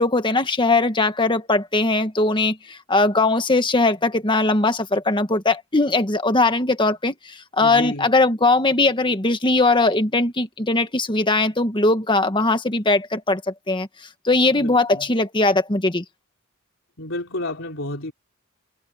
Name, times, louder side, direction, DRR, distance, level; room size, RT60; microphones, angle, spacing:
voice 1, 0.0-13.9 14.2-16.0, left 2 dB, 25° left, 1.6 m, -20 dB
voice 2, 7.6-8.1 14.6-15.1 17.0-18.1, left 1 dB, 65° left, 4.0 m, -31 dB
head